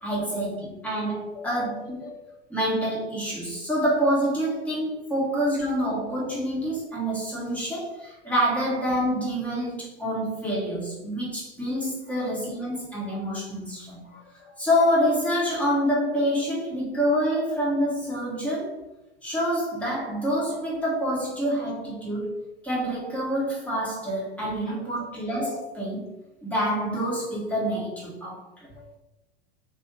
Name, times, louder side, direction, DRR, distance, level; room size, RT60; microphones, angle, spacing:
voice 1, 0.0-2.0 2.5-14.0 14.6-18.8 19.2-26.2 26.4-28.7, equal, 5° left, -5 dB, 1.2 m, -27 dB
voice 2, 1.3-2.1 12.1-12.3 14.0-14.5 24.7-24.8 28.7-28.8, left 6 dB, 30° left, -3 dB, 1.2 m, -43 dB
3.5 x 2.6 x 3.2 m, 0.95 s
figure-of-eight pair, 90°, 32 cm